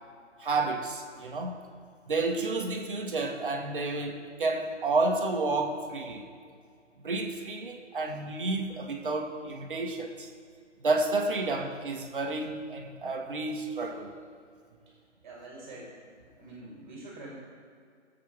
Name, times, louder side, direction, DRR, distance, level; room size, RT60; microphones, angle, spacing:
voice 1, 0.4-1.6 2.1-6.3 7.0-10.3 10.8-14.2, right 3 dB, 45° right, 3 dB, 1.4 m, -30 dB
voice 2, 15.2-15.9 16.4-17.3, right 2 dB, 25° right, -4 dB, 2.5 m, -45 dB
20.0 x 7.5 x 3.5 m, 2.2 s
figure-of-eight pair, 145°, 36 cm